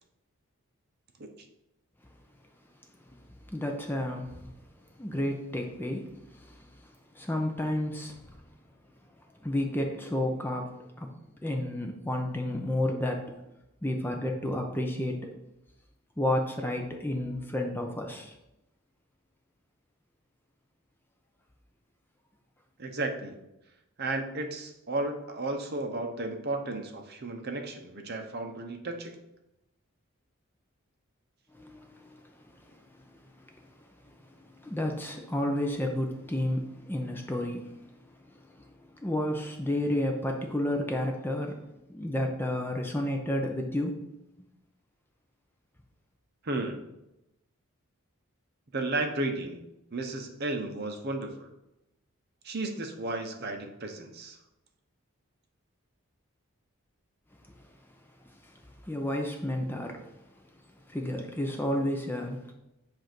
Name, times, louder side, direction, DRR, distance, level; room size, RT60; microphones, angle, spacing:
voice 1, 3.5-4.5 5.0-6.7 7.1-8.2 9.4-11.1 11.4-13.3 13.8-15.3 16.2-18.3 31.5-32.2 32.5-33.1 33.5-33.6 34.1-37.8 38.3-38.7 38.9-41.6 41.9-44.1 44.4-44.5 58.4-58.5 58.8-60.1 60.9-62.5, left 1 dB, 10° left, 2 dB, 0.5 m, -31 dB
voice 2, 22.8-23.4 24.0-29.2 46.4-46.8 48.7-49.6 49.9-51.5 52.4-54.4, right 2 dB, 45° right, 5 dB, 0.7 m, -33 dB
7.6 x 2.6 x 5.9 m, 0.91 s
head